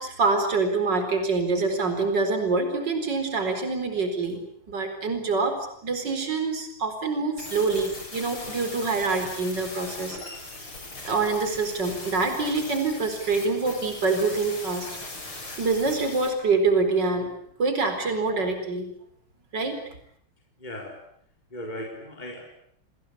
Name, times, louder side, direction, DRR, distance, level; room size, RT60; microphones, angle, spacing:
voice 1, 0.0-4.4 4.7-5.6 5.8-10.2 11.0-14.9 15.6-17.3 17.6-18.9 19.5-19.8, right 3 dB, 55° right, 7 dB, 5.0 m, -25 dB
sound 1, 7.4-16.3, left 2 dB, 80° left, 6.9 m, -39 dB
voice 2, 20.6-21.0 21.5-22.4, left 1 dB, 20° left, 1 dB, 4.4 m, -37 dB
29.5 x 21.0 x 8.6 m, 0.66 s
omnidirectional pair, 2.3 m